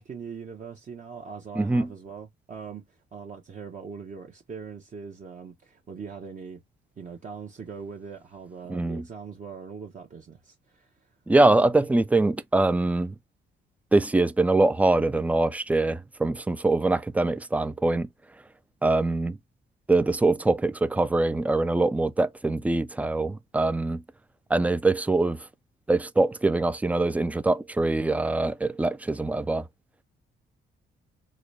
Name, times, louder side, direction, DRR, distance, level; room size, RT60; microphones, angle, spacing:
voice 1, 0.0-6.6 7.0-10.9, right 6 dB, 40° right, 0.8 m, -41 dB
voice 2, 1.6-1.9 8.7-9.0 11.3-13.1 13.9-18.1 18.8-19.4 19.9-24.0 24.5-25.5 25.9-29.7, right 2 dB, 5° right, 0.4 m, -23 dB
3.9 x 2.2 x 3.2 m
cardioid pair, 90°, 20 cm